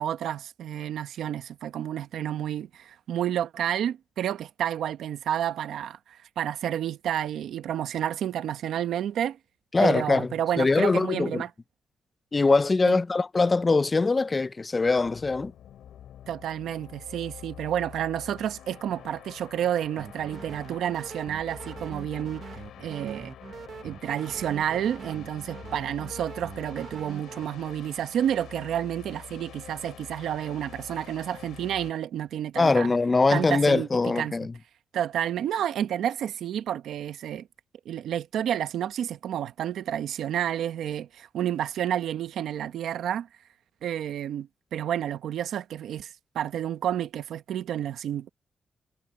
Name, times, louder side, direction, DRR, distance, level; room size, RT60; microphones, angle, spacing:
voice 1, 0.0-9.4 9.8-11.5 12.8-13.0 16.3-22.4 22.8-23.3 23.8-32.9 33.3-34.3 34.9-37.5 37.8-43.3 43.8-48.3, right 10 dB, 90° right, 1.0 m, -30 dB
voice 2, 9.7-10.3 10.6-11.4 12.3-15.5 32.6-34.5, left 3 dB, 30° left, 0.4 m, -22 dB
sound 1, 14.9-31.9, left 10 dB, 90° left, 6.8 m, -46 dB
sound 2, 20.0-27.5, right 6 dB, 60° right, 0.9 m, -43 dB
cardioid pair, 100°, 0 cm